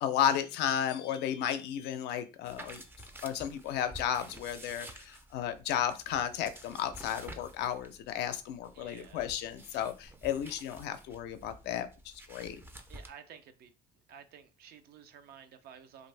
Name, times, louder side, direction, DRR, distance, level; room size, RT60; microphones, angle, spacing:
voice 1, 0.0-2.8 3.2-12.6, left 9 dB, 80° left, 10 dB, 0.5 m, -33 dB
sound 1, 2.4-13.1, right 1 dB, 15° right, 0.4 m, -51 dB
voice 2, 8.7-9.2 12.9-13.7 14.1-16.1, right 8 dB, 65° right, 9 dB, 0.5 m, -52 dB
2.5 x 2.5 x 3.2 m, 0.32 s
cardioid pair, 110°, 17 cm